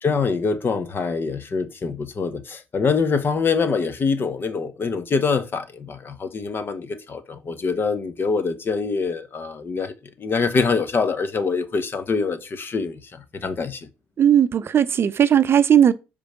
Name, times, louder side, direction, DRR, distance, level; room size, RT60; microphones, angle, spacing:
voice 1, 0.0-13.9, left 5 dB, 40° left, 1.0 m, -25 dB
voice 2, 14.2-15.9, right 9 dB, 45° right, 0.5 m, -17 dB
5.2 x 5.1 x 5.8 m
hypercardioid pair, 55°, 5 cm